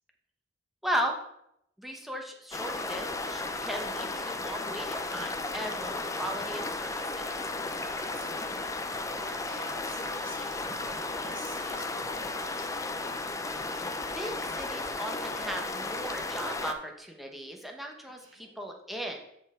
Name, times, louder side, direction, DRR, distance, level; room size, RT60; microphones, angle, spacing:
voice 1, 0.8-1.1 1.8-7.2 14.2-19.2, equal, ahead, 1 dB, 1.0 m, -37 dB
sound 1, 2.5-16.7, left 2 dB, 15° left, 0.5 m, -34 dB
voice 2, 5.8-6.2 7.7-12.9 18.2-18.6, right 2 dB, 70° right, 0 dB, 1.1 m, -50 dB
13.0 x 4.4 x 3.7 m, 0.78 s
head